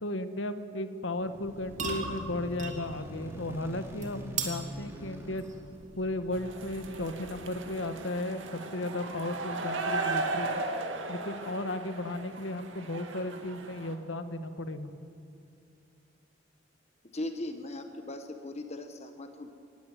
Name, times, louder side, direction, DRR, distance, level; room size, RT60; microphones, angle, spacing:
voice 1, 0.0-5.4 5.9-10.6 11.1-14.9, left 1 dB, 85° left, 10 dB, 1.3 m, -35 dB
sound 1, 1.2-6.6, equal, 15° right, 3.2 m, -45 dB
sound 2, 1.4-7.8, right 4 dB, 40° right, 2.4 m, -41 dB
sound 3, 6.3-13.9, right 3 dB, 80° right, 2.0 m, -36 dB
voice 2, 17.1-19.5, left 1 dB, 35° left, 7 dB, 1.0 m, -38 dB
18.5 x 16.0 x 9.6 m, 2.5 s
head